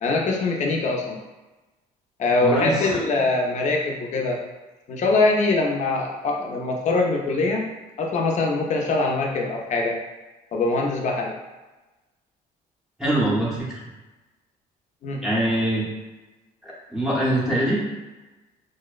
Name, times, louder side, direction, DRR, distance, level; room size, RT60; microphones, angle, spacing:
voice 1, 0.0-1.2 2.2-4.4 4.9-7.7 8.0-10.0 10.5-11.3 15.0-15.2, left 3 dB, 45° left, 0 dB, 0.5 m, -23 dB
voice 2, 2.4-2.7 13.0-13.7 15.2-15.8 16.6-17.8, right 1 dB, 5° right, -7 dB, 0.6 m, -23 dB
2.6 x 2.0 x 2.3 m, 1.1 s
cardioid pair, 110°, 17 cm